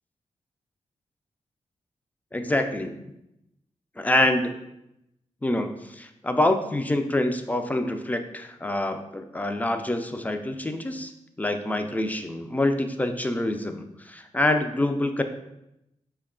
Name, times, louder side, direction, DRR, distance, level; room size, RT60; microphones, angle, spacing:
voice 1, 2.3-2.9 4.0-4.5 5.4-11.1 11.4-15.2, left 1 dB, 10° left, 7 dB, 0.3 m, -26 dB
5.2 x 2.3 x 3.6 m, 0.86 s
wide cardioid pair, 90°, 13 cm